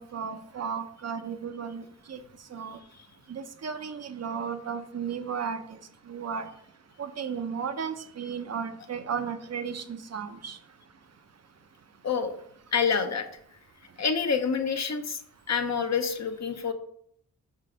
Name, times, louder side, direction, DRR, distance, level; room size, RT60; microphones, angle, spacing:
voice 1, 0.0-2.2 2.5-2.8 3.3-5.8 6.1-6.5 7.0-10.6, right 6 dB, 50° right, 9 dB, 0.8 m, -34 dB
voice 2, 12.7-13.3 14.0-15.2 15.5-16.7, left 6 dB, 50° left, 7 dB, 0.9 m, -27 dB
5.6 x 3.7 x 5.0 m, 0.67 s
supercardioid pair, 45°, 34 cm